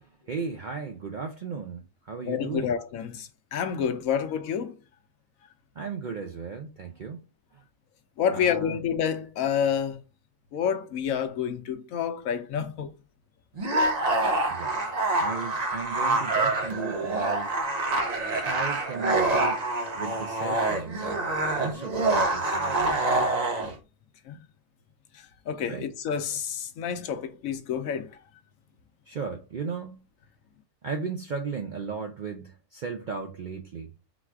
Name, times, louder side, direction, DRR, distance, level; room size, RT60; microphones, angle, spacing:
voice 1, 0.0-2.7 5.8-7.2 7.5-7.6 8.3-8.8 14.5-14.8 15.2-17.5 18.4-21.2 21.6-23.3 25.7-25.9 29.1-30.0 30.8-33.9, right 5 dB, 60° right, 0.4 m, -36 dB
voice 2, 2.2-4.8 8.2-10.0 10.5-12.9 24.3-24.4 25.5-28.1, left 8 dB, 80° left, 1.1 m, -28 dB
sound 1, 13.6-23.7, right 2 dB, 35° right, 0.8 m, -26 dB
4.0 x 2.4 x 4.4 m
omnidirectional pair, 1.4 m